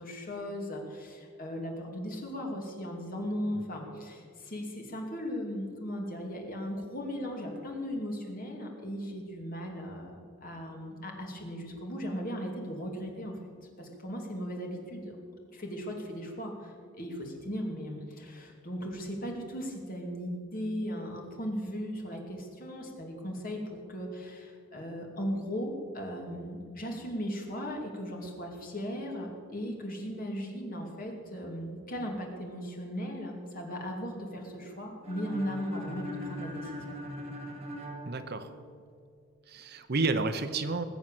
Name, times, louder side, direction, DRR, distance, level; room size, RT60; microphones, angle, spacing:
voice 1, 0.0-13.4 13.8-15.2 15.5-36.9, equal, 40° left, 1 dB, 2.6 m, -37 dB
sound 1, 35.0-38.9, left 1 dB, 25° right, 2.4 m, -41 dB
voice 2, 38.0-38.5 39.5-40.8, right 3 dB, 45° right, 10 dB, 0.7 m, -30 dB
20.5 x 7.9 x 7.5 m, 2.2 s
head